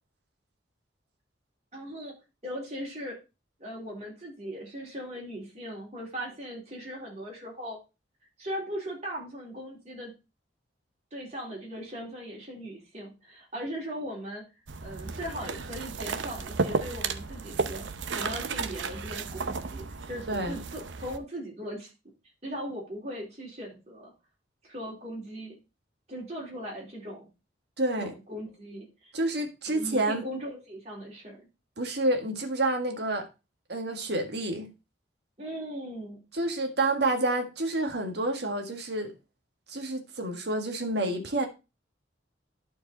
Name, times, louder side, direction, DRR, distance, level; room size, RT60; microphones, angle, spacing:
voice 1, 1.7-2.2 2.4-3.2 3.6-7.8 8.4-10.1 11.1-14.4 14.8-17.9 18.1-21.9 22.4-24.1 24.6-25.6 26.1-27.3 28.0-29.1 29.7-31.4 35.4-36.2, equal, 35° right, 3.8 m, -39 dB
sound 1, 14.7-21.2, right 4 dB, 80° right, 0.7 m, -33 dB
voice 2, 20.3-20.6 27.8-28.1 29.1-30.2 31.8-33.3 33.7-34.7 36.3-39.1 39.7-41.5, right 2 dB, 60° right, 1.7 m, -29 dB
11.0 x 4.7 x 4.0 m
head